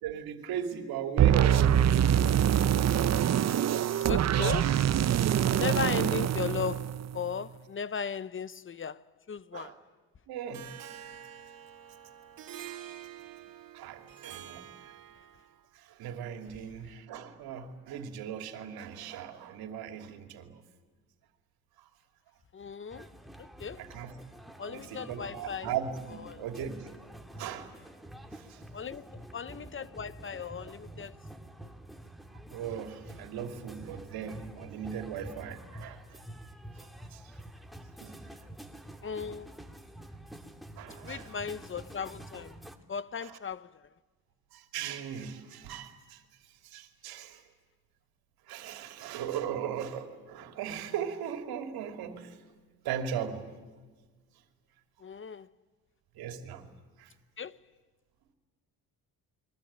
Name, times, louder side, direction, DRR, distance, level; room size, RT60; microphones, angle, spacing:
voice 1, 0.0-2.0 9.5-9.8 10.3-10.7 12.6-12.8 13.7-14.6 15.7-20.6 23.8-24.1 24.7-26.9 27.3-27.7 28.3-28.6 29.5-29.7 32.5-36.2 36.8-37.2 38.0-38.2 40.8-41.4 43.2-43.4 44.5-46.2 46.6-47.4 48.5-52.4 52.8-53.5 56.1-56.7 57.0-57.1, right 8 dB, 80° right, 2.9 m, -38 dB
sound 1, 1.2-7.3, right 10 dB, 45° right, 0.8 m, -25 dB
voice 2, 4.1-4.9 5.5-9.8 22.5-23.1 23.4-23.8 24.6-25.7 26.2-26.4 28.7-31.1 39.0-39.5 41.0-42.5 42.9-43.8 55.0-55.5 57.4-57.6, left 6 dB, 35° left, 0.8 m, -37 dB
Harp, 10.5-15.5, right 10 dB, 65° right, 2.4 m, -47 dB
sound 2, 22.9-42.8, right 1 dB, ahead, 2.5 m, -48 dB
30.0 x 22.5 x 8.8 m
supercardioid pair, 75°, 36 cm